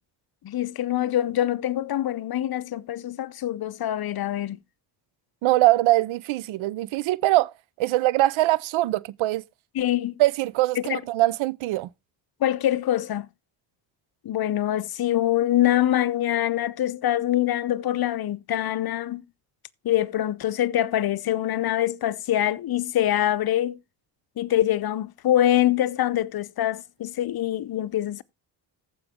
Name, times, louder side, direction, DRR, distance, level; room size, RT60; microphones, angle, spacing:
voice 1, 0.4-4.6 9.7-10.1 10.9-11.0 12.4-13.3 14.2-19.2 19.8-23.8 24.4-28.2, left 12 dB, 50° left, 0.7 m, -24 dB
voice 2, 5.4-9.4 10.2-11.9, right 17 dB, 80° right, 0.6 m, -22 dB
14.5 x 5.3 x 3.6 m
supercardioid pair, 60°, 47 cm